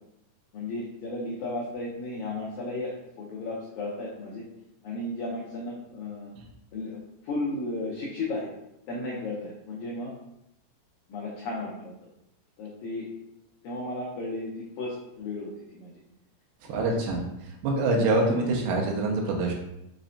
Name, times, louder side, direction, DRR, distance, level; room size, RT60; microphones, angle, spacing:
voice 1, 0.5-2.9 3.2-4.4 4.8-6.3 6.7-8.5 8.9-10.1 11.1-11.9 12.6-13.1 13.6-15.9 16.6-17.1, left 2 dB, 85° left, -4 dB, 1.6 m, -34 dB
voice 2, 16.7-17.3 17.6-19.5, right 2 dB, 85° right, 0 dB, 2.3 m, -25 dB
5.8 x 2.1 x 2.6 m, 0.83 s
omnidirectional pair, 4.1 m